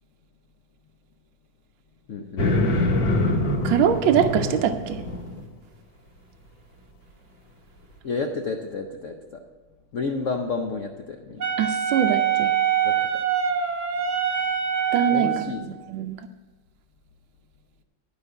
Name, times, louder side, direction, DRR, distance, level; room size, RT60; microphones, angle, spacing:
voice 1, 2.1-3.0 8.0-9.4 9.9-11.5 12.8-13.2 15.1-15.8, left 4 dB, 85° left, 3 dB, 0.6 m, -31 dB
sound 1, 2.4-5.4, left 2 dB, 60° left, 1.8 m, -24 dB
voice 2, 3.6-5.0 11.6-12.5 14.9-16.2, right 8 dB, 75° right, 6 dB, 1.3 m, -23 dB
Wind instrument woodwind instrument, 11.4-15.6, right 8 dB, 55° right, 0.8 m, -24 dB
11.5 x 5.1 x 7.9 m, 1.3 s
omnidirectional pair, 2.3 m